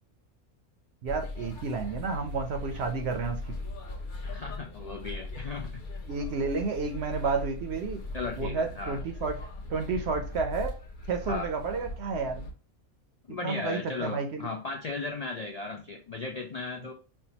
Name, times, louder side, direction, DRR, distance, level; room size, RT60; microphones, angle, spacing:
voice 1, 1.0-3.6 6.1-8.0 8.4-9.4 9.7-10.8 11.1-12.5 13.3-14.5, right 4 dB, 60° right, 6 dB, 0.8 m, -31 dB
sound 1, 1.1-12.5, left 2 dB, 45° left, 0.8 m, -39 dB
voice 2, 4.2-5.8 8.1-9.0 11.3-11.5 13.3-16.9, left 3 dB, 65° left, 1 dB, 0.3 m, -36 dB
5.5 x 2.3 x 2.8 m, 0.37 s
omnidirectional pair, 1.4 m